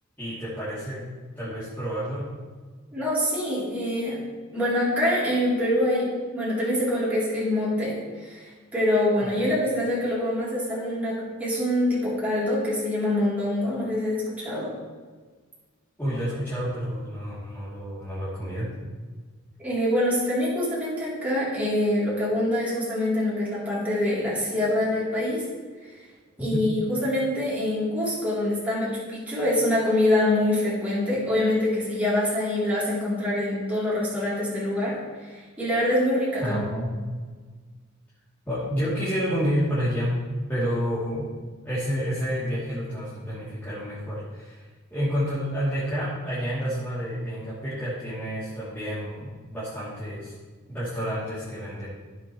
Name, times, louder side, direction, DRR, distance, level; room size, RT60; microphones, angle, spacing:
voice 1, 0.2-1.1 1.4-2.3 9.2-9.5 16.0-18.7 36.4-36.9 38.4-40.2 40.5-41.3 41.6-44.6 44.9-50.3 50.7-51.8, equal, 10° left, -11 dB, 3.2 m, -29 dB
voice 2, 2.9-4.2 4.5-14.7 19.6-25.4 26.4-36.7, left 1 dB, 5° right, -9 dB, 3.7 m, -25 dB
16.0 x 7.5 x 3.3 m, 1.5 s
head